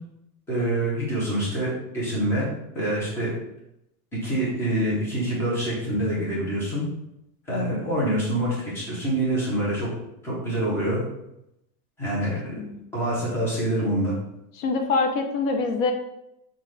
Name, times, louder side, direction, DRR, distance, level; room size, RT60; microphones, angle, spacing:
voice 1, 0.5-2.5 2.7-3.3 4.2-6.8 7.5-9.9 10.2-11.0 12.0-12.4 12.9-14.1, right 1 dB, 5° left, -6 dB, 0.6 m, -26 dB
voice 2, 12.3-12.8 14.6-15.9, left 4 dB, 55° left, 4 dB, 0.6 m, -25 dB
5.7 x 2.4 x 3.2 m, 0.84 s
supercardioid pair, 170°, 48 cm